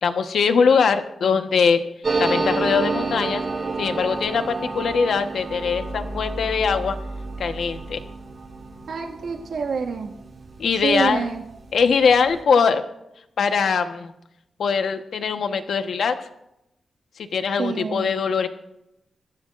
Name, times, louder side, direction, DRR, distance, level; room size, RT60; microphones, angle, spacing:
voice 1, 0.0-1.8 2.2-3.4 3.8-7.0 7.4-8.0 10.6-11.2 11.7-12.8 13.4-14.1 14.6-16.2 17.3-18.5, left 5 dB, 75° left, 7 dB, 1.2 m, -21 dB
sound 1, 2.0-11.2 11.5-11.6 11.8-12.4, right 3 dB, 45° right, 4.7 m, -29 dB
voice 2, 8.9-10.1 10.8-11.4 17.6-18.1, right 4 dB, 70° right, 0 dB, 2.0 m, -26 dB
25.0 x 14.5 x 2.6 m, 0.86 s
wide cardioid pair, 130°, 0 cm